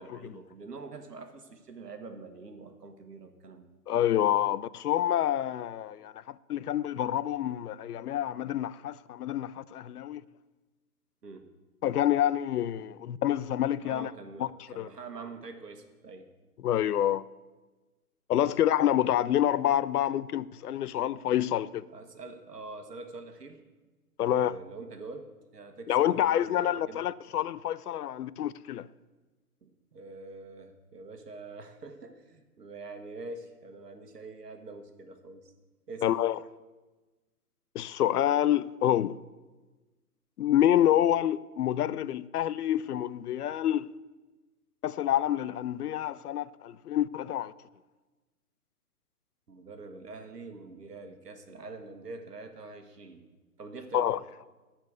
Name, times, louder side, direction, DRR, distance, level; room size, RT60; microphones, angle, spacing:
voice 1, 0.0-3.7 11.2-11.5 13.8-16.3 18.4-18.6 21.9-23.6 24.2-27.1 29.6-35.5 35.9-36.1 49.5-53.3 53.6-54.2, right 3 dB, 85° right, 1.4 m, -45 dB
voice 2, 3.9-10.2 11.8-14.1 14.4-14.5 14.8-14.9 16.6-17.2 18.3-21.9 24.2-24.5 25.9-28.9 36.0-36.4 37.7-39.2 40.4-43.9 44.8-47.5 53.9-54.2, left 11 dB, 75° left, 0.5 m, -27 dB
12.0 x 4.4 x 8.2 m
hypercardioid pair, 130°, 46 cm